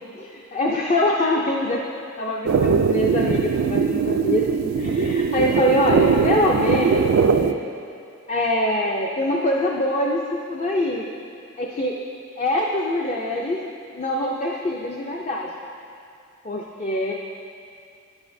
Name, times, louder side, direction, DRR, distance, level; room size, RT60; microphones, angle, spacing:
voice 1, 0.2-1.8 2.2-4.4 4.8-7.1 8.3-10.2 10.5-11.0 11.6-12.0 12.4-13.6 13.9-15.7 16.4-17.1, left 1 dB, 30° left, -1 dB, 0.4 m, -23 dB
sound 1, 2.5-7.5, right 5 dB, 75° right, 0.3 m, -21 dB
11.0 x 7.1 x 2.6 m, 2.5 s
head